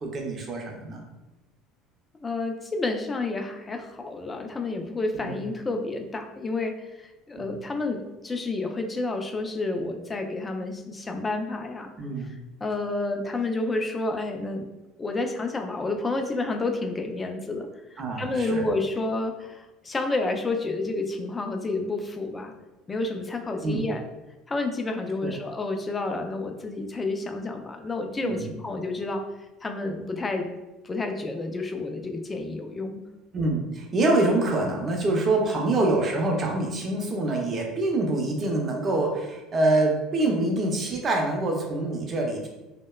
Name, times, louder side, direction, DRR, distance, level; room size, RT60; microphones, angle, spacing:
voice 1, 0.0-1.0 5.1-5.4 7.3-7.5 12.0-12.3 18.0-18.6 23.6-23.9 25.2-25.3 28.2-28.5 33.3-42.5, right 2 dB, 35° right, 0 dB, 0.5 m, -25 dB
voice 2, 2.2-11.9 12.2-14.7 15.0-22.5 22.9-24.0 24.5-29.2 29.6-30.5 30.8-33.0, left 2 dB, 20° left, 4 dB, 0.3 m, -30 dB
2.7 x 2.1 x 2.2 m, 1.0 s
supercardioid pair, 105°, 0 cm